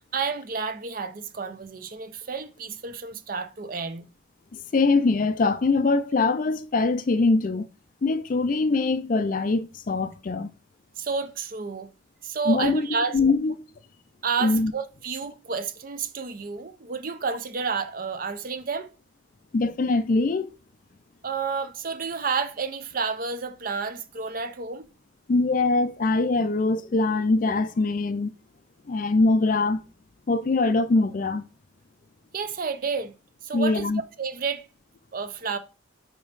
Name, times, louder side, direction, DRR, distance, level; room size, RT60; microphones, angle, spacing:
voice 1, 0.1-4.1 11.0-11.9 12.2-13.2 14.2-18.9 21.2-24.9 32.3-33.1 33.4-33.9 34.2-34.7 35.1-35.6, right 5 dB, 45° right, 0.5 m, -30 dB
voice 2, 4.5-7.7 8.0-10.5 12.5-12.9 13.1-13.5 14.4-14.7 19.5-20.6 25.3-28.3 28.9-29.8 30.3-31.4 33.5-34.0, left 3 dB, 45° left, 0.4 m, -23 dB
5.2 x 4.6 x 4.0 m
head